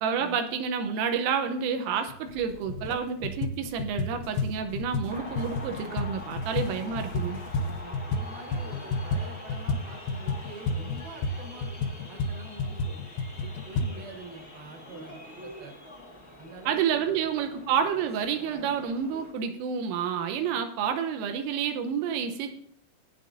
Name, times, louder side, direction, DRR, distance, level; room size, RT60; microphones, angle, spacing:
voice 1, 0.0-7.4 16.7-22.6, right 7 dB, 85° right, 6 dB, 3.5 m, -29 dB
sound 1, 2.1-2.2 2.6-3.0 3.2-8.3 8.5-13.9, left 3 dB, 90° left, 3.3 m, -31 dB
sound 2, 2.3-7.9, left 4 dB, 70° left, 1.9 m, -47 dB
sound 3, 5.1-19.3, left 1 dB, 20° left, 0.5 m, -45 dB
voice 2, 7.5-13.1 13.4-15.7 16.4-17.2 20.5-20.6, right 2 dB, 60° right, 3 dB, 2.8 m, -46 dB
18.0 x 9.2 x 2.6 m, 0.71 s
omnidirectional pair, 5.8 m